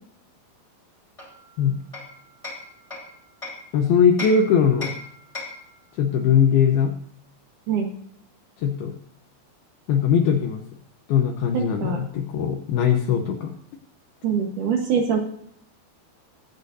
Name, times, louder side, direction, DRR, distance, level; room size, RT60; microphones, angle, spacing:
Hammer, 1.2-3.7 4.2-5.7, left 3 dB, 10° left, 3.3 m, -37 dB
voice 1, 3.7-4.9 6.0-6.9 8.6-9.0 9.9-10.6 11.1-13.5, left 7 dB, 75° left, 3 dB, 2.6 m, -20 dB
voice 2, 11.5-12.0 14.2-15.2, right 7 dB, 65° right, 2 dB, 2.3 m, -24 dB
22.5 x 8.2 x 2.7 m, 0.67 s
omnidirectional pair, 5.0 m